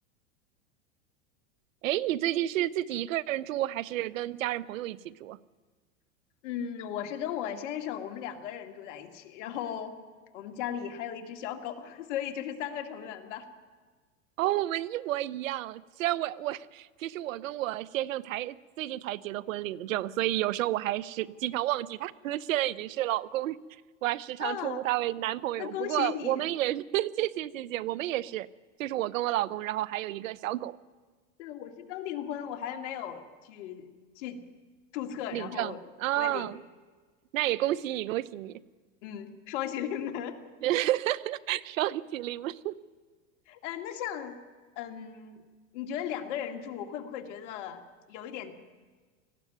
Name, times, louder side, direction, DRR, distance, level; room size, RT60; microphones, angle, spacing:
voice 1, 1.8-5.4 14.4-23.6 24.0-28.5 28.8-30.8 35.3-36.6 37.3-38.6 40.6-42.7, right 14 dB, 85° right, 19 dB, 0.8 m, -31 dB
voice 2, 6.4-10.0 10.3-13.5 24.4-24.8 25.6-26.5 31.4-33.9 34.2-34.4 34.9-35.8 36.2-36.5 39.0-40.4 43.5-44.4 44.8-45.4 45.7-47.8 48.1-48.5, left 10 dB, 65° left, 6 dB, 2.4 m, -36 dB
19.0 x 14.5 x 9.3 m, 1.4 s
supercardioid pair, 130°, 39 cm